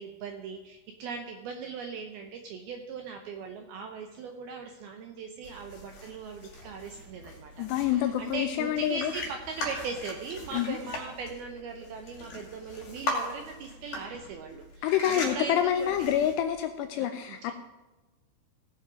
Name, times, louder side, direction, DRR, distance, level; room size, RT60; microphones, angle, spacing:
voice 1, 0.0-16.1 17.0-17.5, right 5 dB, 80° right, 4 dB, 2.2 m, -39 dB
sound 1, 5.4-16.6, left 2 dB, 45° left, 3.7 m, -40 dB
voice 2, 7.6-9.1 10.5-10.8 14.8-17.5, left 11 dB, 85° left, 8 dB, 2.5 m, -27 dB
17.5 x 7.5 x 5.1 m, 1.1 s
omnidirectional pair, 5.5 m